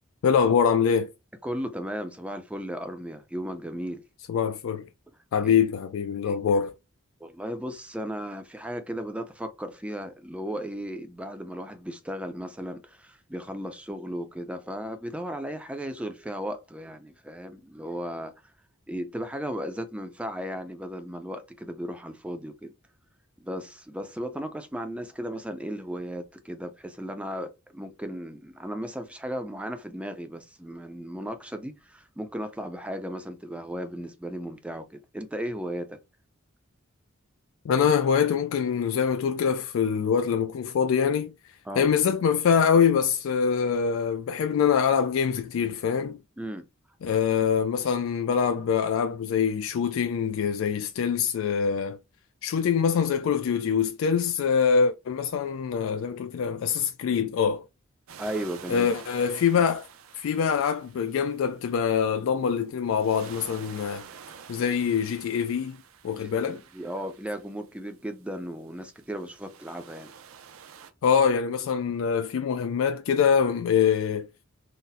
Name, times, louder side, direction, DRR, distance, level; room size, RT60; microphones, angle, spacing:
voice 1, 0.2-1.1 4.3-4.9 5.3-6.7 37.6-41.3 41.8-46.2 47.0-52.0 52.4-57.7 58.7-59.9 60.2-64.1 64.5-65.8 66.0-66.6 71.0-74.3, left 7 dB, 75° left, 0.3 m, -24 dB
voice 2, 1.4-4.0 5.4-5.6 6.2-6.4 7.2-18.3 18.9-22.7 23.4-36.0 41.7-41.9 46.4-46.7 58.2-59.0 66.1-70.1, equal, 5° right, 0.4 m, -35 dB
sound 1, 58.1-61.8 62.9-67.9 68.7-70.9, right 7 dB, 90° right, 0.5 m, -48 dB
4.0 x 2.0 x 2.6 m
head